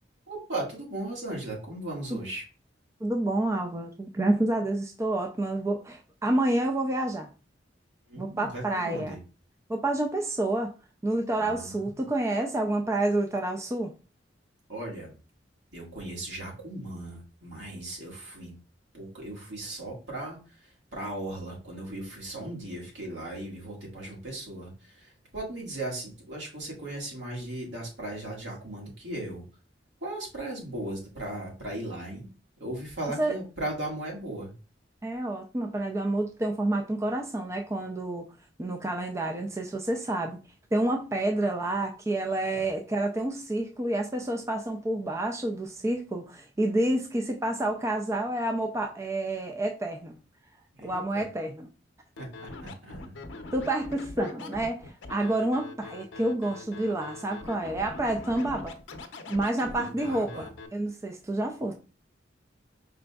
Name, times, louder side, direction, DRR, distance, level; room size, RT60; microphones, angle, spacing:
voice 1, 0.3-2.4 8.1-9.2 11.4-12.0 14.7-15.1 15.7-18.5 18.9-29.4 30.0-32.3 32.6-34.5 42.5-42.6 50.8-51.2 52.2-53.2 59.7-60.5, right 1 dB, 70° right, 1.8 m, -37 dB
voice 2, 3.0-7.3 8.2-9.2 9.7-10.7 11.0-13.9 33.2-33.3 35.0-38.2 38.6-40.4 40.7-50.2 50.8-51.7 53.5-58.8 59.3-60.4 60.7-61.7, right 1 dB, 15° right, 0.3 m, -29 dB
Scratching (performance technique), 52.2-60.7, left 3 dB, 80° left, 0.6 m, -43 dB
5.0 x 3.5 x 2.2 m
head